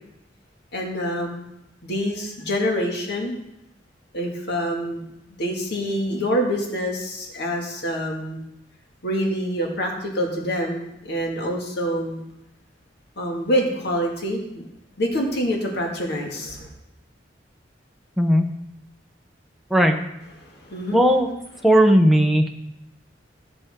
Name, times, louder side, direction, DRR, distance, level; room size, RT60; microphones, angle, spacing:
voice 1, 0.7-1.4 1.8-3.3 4.1-5.0 5.4-8.4 9.0-12.3 13.2-14.6 15.0-16.7 20.4-21.0, equal, 65° left, 0 dB, 2.2 m, -26 dB
voice 2, 20.9-21.3 21.6-22.5, equal, ahead, 2 dB, 0.9 m, -16 dB
16.0 x 6.8 x 3.8 m, 0.84 s
head